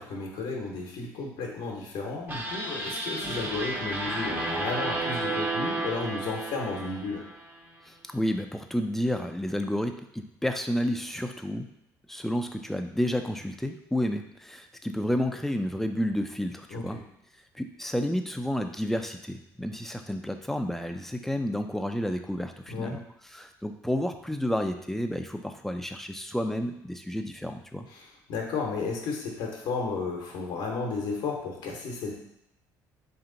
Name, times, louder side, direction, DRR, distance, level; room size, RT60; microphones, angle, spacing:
voice 1, 0.0-7.2 16.7-17.0 22.7-22.9 27.9-32.1, left 4 dB, 75° left, -1 dB, 0.9 m, -33 dB
sound 1, 2.3-7.6, right 2 dB, 20° right, 0.8 m, -32 dB
voice 2, 8.1-11.7 12.1-17.0 17.6-23.0 23.3-27.9, equal, 5° left, 6 dB, 0.4 m, -30 dB
3.3 x 2.9 x 3.8 m, 0.78 s
supercardioid pair, 75°, 9 cm